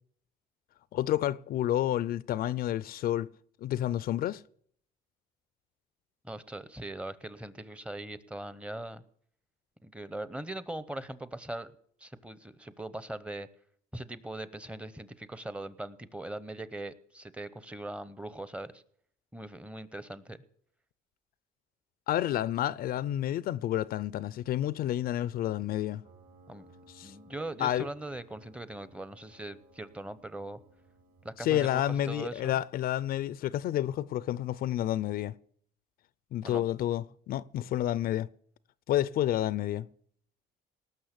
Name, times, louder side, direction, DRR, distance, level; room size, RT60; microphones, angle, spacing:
voice 1, 0.9-3.3 3.6-4.4 22.1-26.0 26.9-27.1 27.6-27.9 31.4-35.3 36.3-38.3 38.9-39.9, left 12 dB, 60° left, 0.5 m, -30 dB
voice 2, 6.2-9.0 9.8-11.7 12.0-13.5 13.9-18.8 19.3-20.4 26.5-26.7 27.0-30.6 31.2-32.6 36.4-36.7, right 1 dB, 5° right, 0.8 m, -40 dB
Piano, 26.0-32.5, right 1 dB, 70° right, 4.9 m, -59 dB
19.0 x 6.4 x 8.1 m
cardioid pair, 110°, 17 cm